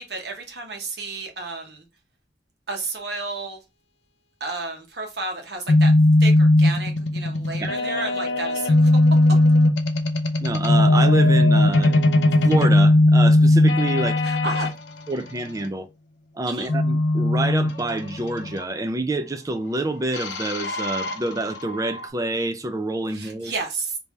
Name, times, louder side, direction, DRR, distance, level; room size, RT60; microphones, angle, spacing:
voice 1, 0.0-1.8 2.7-3.6 4.4-5.9 6.2-8.9 14.2-14.7 16.5-16.7 23.1-24.0, right 3 dB, 65° right, 1.1 m, -32 dB
sound 1, 5.7-14.7 16.7-18.6 20.1-22.1, left 1 dB, 80° left, 0.6 m, -18 dB
voice 2, 10.4-12.0 12.4-14.2 15.1-15.9 16.3-23.5, right 2 dB, 20° right, 0.4 m, -27 dB
3.3 x 2.7 x 3.2 m
head